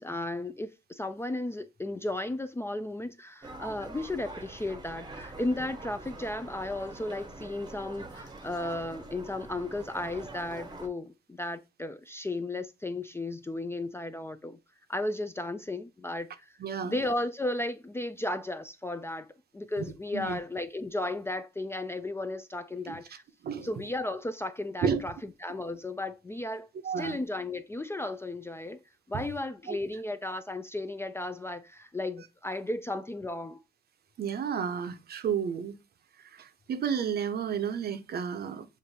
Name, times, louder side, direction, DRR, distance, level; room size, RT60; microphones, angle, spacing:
voice 1, 0.0-14.6 14.9-16.5 16.8-19.3 19.5-23.2 23.6-25.1 25.4-28.8 29.1-33.6, left 2 dB, 15° left, 0.3 m, -34 dB
sound 1, 3.4-10.9, right 2 dB, 20° right, 0.8 m, -45 dB
voice 2, 16.6-17.0 20.1-20.4 22.9-23.0 23.4-23.7 24.8-25.0 26.8-27.2 29.1-29.2 29.7-29.8 34.2-35.8 36.3-38.7, right 7 dB, 55° right, 0.6 m, -31 dB
7.1 x 2.5 x 2.7 m
cardioid pair, 90°, 20 cm